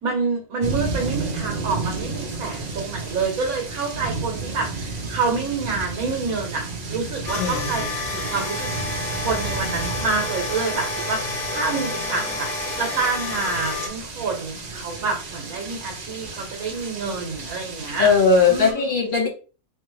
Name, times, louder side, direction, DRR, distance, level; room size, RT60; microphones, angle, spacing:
voice 1, 0.0-6.6 6.9-8.7 9.2-18.1 18.5-18.9, right 4 dB, 80° right, 0 dB, 1.4 m, -27 dB
sound 1, 0.6-18.7, right 3 dB, 45° right, 0.6 m, -33 dB
sound 2, 7.3-13.9, left 2 dB, 65° left, 1.2 m, -29 dB
voice 2, 7.4-7.9 18.0-19.3, left 4 dB, 50° left, -3 dB, 2.0 m, -19 dB
3.4 x 3.1 x 3.1 m, 0.36 s
omnidirectional pair, 1.5 m